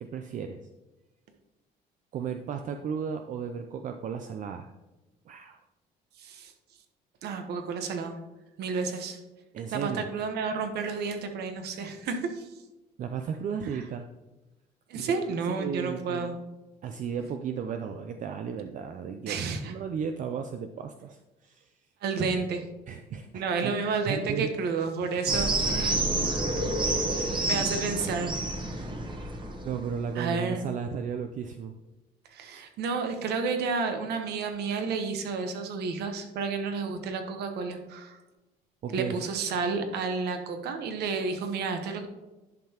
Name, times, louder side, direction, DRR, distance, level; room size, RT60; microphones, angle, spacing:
voice 1, 0.0-0.7 2.1-4.7 5.3-5.6 9.5-10.0 13.0-14.1 14.9-16.4 16.8-19.4 19.6-21.7 22.9-23.8 24.1-24.5 25.1-25.2 27.1-27.7 29.6-31.7 32.4-32.6 38.8-39.2, right 7 dB, 50° right, 6 dB, 0.5 m, -35 dB
voice 2, 6.2-6.5 7.2-8.2 8.6-9.2 9.7-12.5 13.7-13.8 14.9-16.4 19.3-19.7 22.0-22.7 23.3-26.0 26.5-27.1 27.5-28.3 30.1-30.6 32.3-38.2 38.9-42.1, right 4 dB, 75° right, 6 dB, 1.1 m, -31 dB
sound 1, 25.3-30.1, right 2 dB, 30° right, 1.1 m, -28 dB
10.5 x 5.7 x 2.9 m, 1.1 s
cardioid pair, 110°, 17 cm